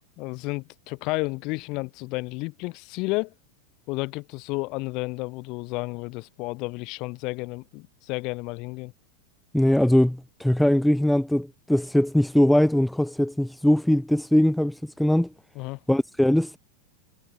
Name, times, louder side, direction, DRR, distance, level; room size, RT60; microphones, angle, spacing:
voice 1, 0.2-3.3 3.9-8.9 15.6-15.8, left 25 dB, 40° left, 2.1 m, -32 dB
voice 2, 9.5-15.3 15.9-16.6, left 1 dB, ahead, 0.4 m, -21 dB
figure-of-eight pair, 90°, 0 cm